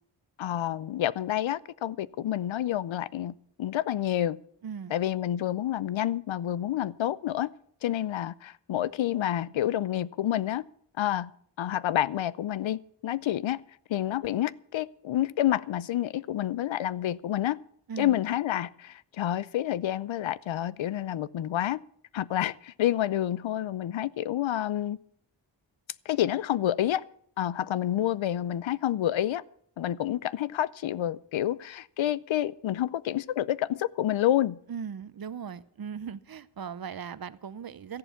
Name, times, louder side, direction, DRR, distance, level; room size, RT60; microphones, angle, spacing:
voice 1, 0.4-4.4 4.9-7.5 7.8-10.6 11.0-11.3 11.6-13.6 13.9-17.6 18.0-21.8 22.1-25.0 26.1-27.0 27.4-29.4 29.8-34.6, left 12 dB, 90° left, 20 dB, 0.6 m, -29 dB
voice 2, 4.6-4.9 17.9-18.2 34.7-38.0, right 7 dB, 50° right, 16 dB, 0.8 m, -38 dB
14.0 x 11.0 x 7.1 m, 0.64 s
wide cardioid pair, 100°, 45 cm